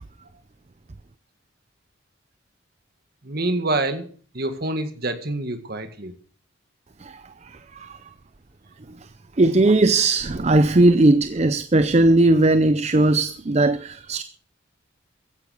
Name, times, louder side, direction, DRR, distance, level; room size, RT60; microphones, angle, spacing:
voice 1, 3.2-4.1 4.3-6.1, right 2 dB, 50° right, 2.0 m, -26 dB
voice 2, 9.4-14.2, right 2 dB, 35° right, 0.6 m, -18 dB
15.0 x 9.9 x 6.6 m
head